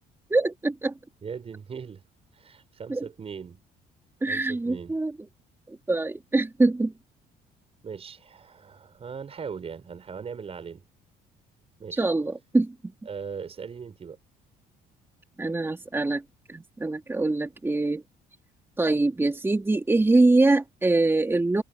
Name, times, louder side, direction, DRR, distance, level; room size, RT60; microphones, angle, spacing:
voice 1, 0.3-0.9 2.9-3.0 4.2-5.1 5.7-6.9 11.9-12.7 15.4-16.2 16.5-18.0 18.8-21.6, right 2 dB, 15° right, 3.3 m, -24 dB
voice 2, 1.2-2.0 2.3-3.6 4.3-5.0 7.8-10.8 11.8-12.0 13.1-14.2, right 6 dB, 35° right, 6.0 m, -39 dB
cardioid pair, 110°, 17 cm